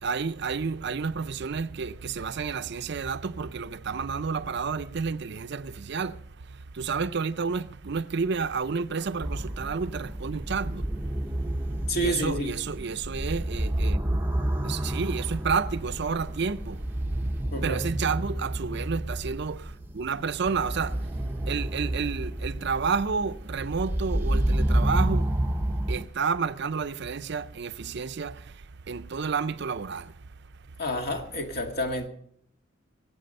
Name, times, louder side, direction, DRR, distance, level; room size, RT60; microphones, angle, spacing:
voice 1, 0.0-6.2 6.5-10.9 12.0-14.0 14.6-16.8 17.6-21.1 21.5-25.3 25.9-30.1, right 5 dB, 60° right, 0.5 m, -30 dB
sound 1, 9.2-26.1, right 1 dB, 10° right, 0.7 m, -29 dB
voice 2, 11.9-12.5 17.5-17.8 30.8-32.1, equal, 50° left, 1.9 m, -29 dB
22.5 x 8.5 x 5.4 m
head